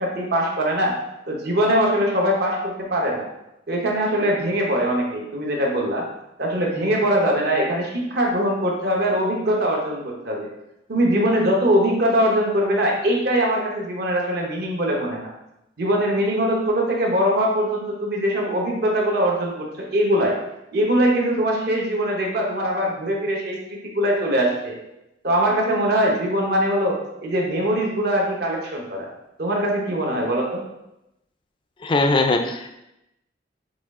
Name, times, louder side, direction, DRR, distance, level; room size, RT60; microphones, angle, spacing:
voice 1, 0.0-0.9 1.3-3.3 3.7-6.0 6.4-10.5 10.9-15.3 15.8-20.3 20.7-24.8 25.2-29.1 29.4-30.6, equal, 55° right, -1 dB, 0.9 m, -22 dB
voice 2, 31.8-32.7, left 2 dB, 25° left, 6 dB, 0.3 m, -20 dB
6.0 x 2.4 x 3.6 m, 0.88 s
head